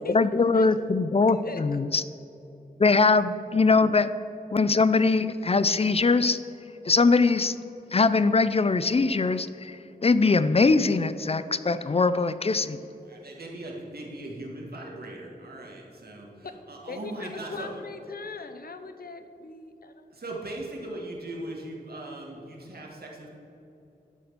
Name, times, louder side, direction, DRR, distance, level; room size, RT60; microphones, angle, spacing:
voice 1, 0.1-2.0 2.8-4.1 4.5-6.4 6.9-7.5 7.9-12.8, left 4 dB, 40° left, 14 dB, 0.4 m, -22 dB
voice 2, 1.3-1.8 16.9-20.1, left 4 dB, 70° left, 8 dB, 0.7 m, -40 dB
voice 3, 13.1-17.7 20.1-23.3, right 1 dB, 75° right, -1 dB, 1.7 m, -39 dB
12.0 x 4.2 x 6.7 m, 2.8 s
wide cardioid pair, 60°, 16 cm